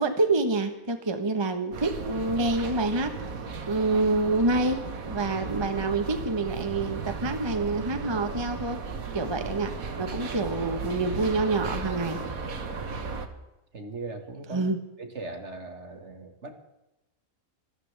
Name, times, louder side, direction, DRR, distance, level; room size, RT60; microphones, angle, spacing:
voice 1, 0.0-3.3 3.7-8.8 9.1-9.7 10.0-12.2 14.5-14.8, right 2 dB, 20° right, 7 dB, 1.2 m, -27 dB
sound 1, 1.7-13.3, right 4 dB, 75° right, 1.8 m, -35 dB
voice 2, 12.9-13.3 13.7-14.7 15.0-16.5, right 3 dB, 50° right, 5 dB, 2.2 m, -39 dB
26.0 x 14.0 x 3.5 m, 0.96 s
omnidirectional pair, 1.5 m